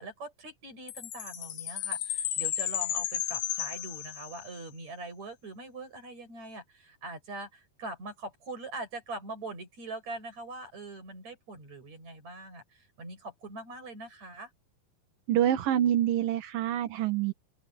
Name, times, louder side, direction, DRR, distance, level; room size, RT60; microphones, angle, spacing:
voice 1, 0.0-14.5, right 2 dB, 45° right, 8.9 m, -42 dB
Chime, 0.9-4.6, left 11 dB, 80° left, 3.3 m, -33 dB
voice 2, 15.3-17.3, right 11 dB, 65° right, 3.1 m, -26 dB
open air
omnidirectional pair, 4.4 m